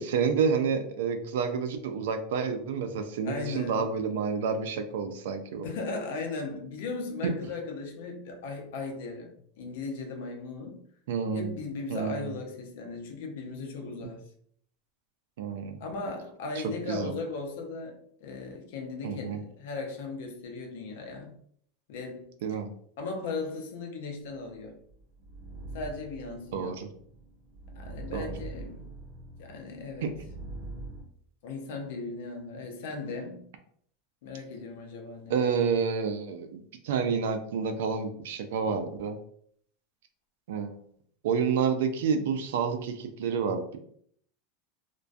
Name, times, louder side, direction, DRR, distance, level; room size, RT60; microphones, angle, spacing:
voice 1, 0.0-5.7 7.2-7.3 11.1-11.6 11.9-12.4 14.0-14.1 15.4-15.8 16.9-17.1 19.0-19.4 22.4-22.7 26.5-26.9 28.1-28.3 30.0-30.1 35.3-39.2 40.5-40.8 41.2-43.8, right 6 dB, 80° right, 0.3 m, -29 dB
voice 2, 3.2-3.9 5.6-10.8 11.3-14.2 15.8-21.4 21.9-22.3 23.0-24.8 25.7-26.8 27.7-28.9 29.4-30.2 31.4-33.5 34.2-35.5, left 3 dB, 75° left, 0.6 m, -37 dB
sound 1, 24.6-31.0, right 2 dB, 60° right, 0.8 m, -43 dB
2.5 x 2.2 x 2.3 m
supercardioid pair, 140°, 0 cm